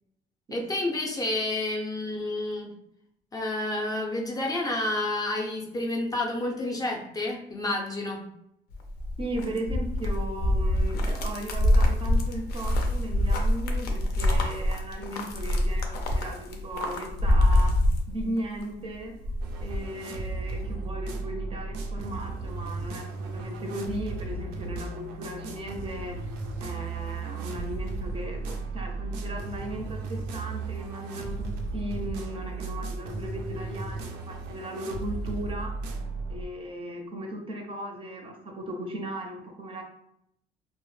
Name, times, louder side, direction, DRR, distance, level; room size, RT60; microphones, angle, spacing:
voice 1, 0.5-2.7 3.3-8.2, left 2 dB, 20° left, 0 dB, 0.4 m, -29 dB
sound 1, 8.7-18.6 18.9-19.9, left 1 dB, 75° left, 0.5 m, -25 dB
voice 2, 9.2-17.8 18.1-19.1 19.6-26.2 26.6-35.7 36.3-39.8, right 1 dB, 35° right, 3 dB, 0.4 m, -37 dB
sound 2, 19.4-36.5, right 3 dB, 90° right, 0.4 m, -35 dB
2.0 x 2.0 x 3.1 m, 0.75 s
cardioid pair, 110°, 17 cm